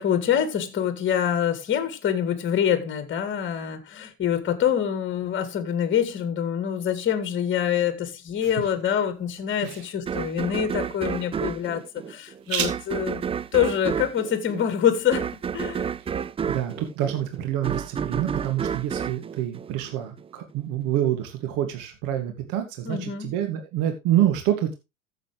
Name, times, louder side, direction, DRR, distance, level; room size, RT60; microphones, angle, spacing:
voice 1, 0.0-13.2 13.5-15.9 22.8-23.3, left 9 dB, 30° left, 2.5 m, -25 dB
sound 1, 8.5-16.0, right 8 dB, 85° right, 2.0 m, -39 dB
sound 2, 10.1-20.3, right 7 dB, 15° right, 0.4 m, -31 dB
voice 2, 16.5-24.7, right 12 dB, 55° right, 2.4 m, -27 dB
14.5 x 7.6 x 3.3 m
hypercardioid pair, 80°, 38 cm